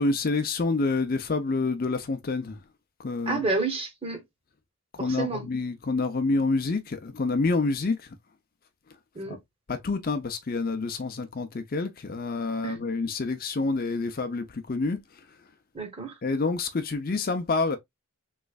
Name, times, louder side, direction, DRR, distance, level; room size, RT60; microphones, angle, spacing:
voice 1, 0.0-2.6 3.0-3.4 4.9-8.0 9.3-9.4 9.7-15.0 16.2-17.8, left 3 dB, 40° left, 0.5 m, -27 dB
voice 2, 3.3-4.2 5.0-5.4 9.1-9.4 12.6-12.8 15.7-16.1, right 3 dB, 25° right, 1.0 m, -30 dB
3.7 x 3.1 x 2.2 m
head